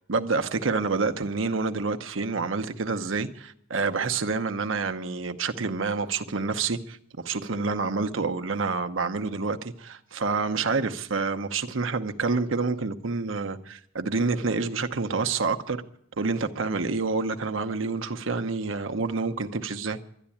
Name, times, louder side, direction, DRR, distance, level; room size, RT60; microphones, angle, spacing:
voice 1, 0.1-15.8 16.2-20.0, right 4 dB, 75° right, 0.9 m, -28 dB
12.0 x 11.0 x 8.6 m
head